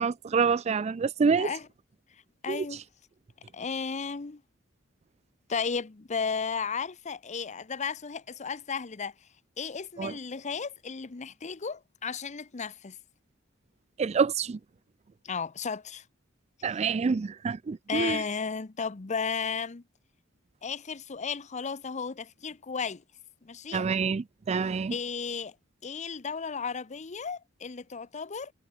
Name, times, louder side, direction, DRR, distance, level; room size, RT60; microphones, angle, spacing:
voice 1, 0.0-1.5 2.5-2.7 10.0-10.1 14.0-14.6 16.6-18.2 23.7-25.0, right 5 dB, 35° right, 0.4 m, -27 dB
voice 2, 2.4-2.8 3.5-4.4 5.5-9.1 9.6-13.0 15.2-16.0 17.9-19.8 20.6-23.0 23.4-23.9 24.9-25.5 25.8-28.5, left 5 dB, 35° left, 0.7 m, -34 dB
head